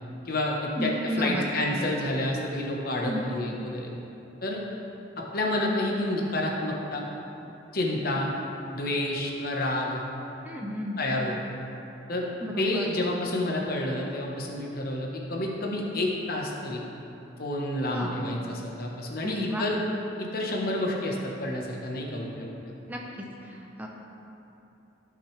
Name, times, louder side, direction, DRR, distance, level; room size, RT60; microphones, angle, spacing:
voice 1, 0.2-3.9 4.4-4.6 5.2-7.0 7.7-8.3 8.7-10.0 11.0-11.3 12.1-12.3 12.6-16.8 17.4-19.8 20.2-22.5, left 1 dB, 50° left, -1 dB, 1.2 m, -29 dB
voice 2, 0.8-1.5 3.0-3.3 10.4-11.0 12.4-12.9 17.9-18.2 19.2-19.6 22.9-23.0 23.4-23.9, equal, 10° right, -1 dB, 0.7 m, -32 dB
15.0 x 6.0 x 3.3 m, 3.0 s
head